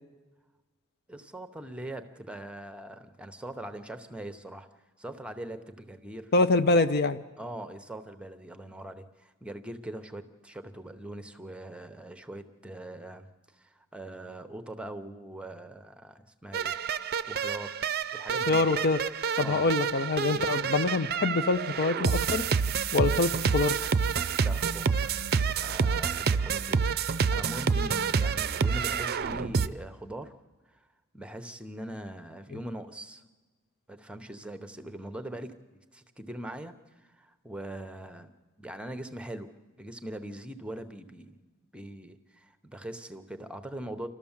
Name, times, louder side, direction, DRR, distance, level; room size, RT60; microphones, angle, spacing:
voice 1, 1.1-4.7 5.0-6.3 6.6-6.8 7.4-16.8 17.3-17.8 18.1-18.6 19.4-19.7 20.2-20.5 24.4-25.0 25.6-30.4 30.7-30.9 31.1-33.2 33.9-35.5 35.9-38.3 38.6-39.5 39.8-41.4 41.7-44.1, right 1 dB, 5° right, 9 dB, 0.8 m, -42 dB
voice 2, 6.3-7.2 18.5-19.0 19.4-22.4 22.9-23.8, left 3 dB, 50° left, 10 dB, 0.6 m, -25 dB
sound 1, 16.5-29.7, right 6 dB, 50° right, 0.5 m, -28 dB
29.0 x 12.5 x 7.3 m, 1.3 s
head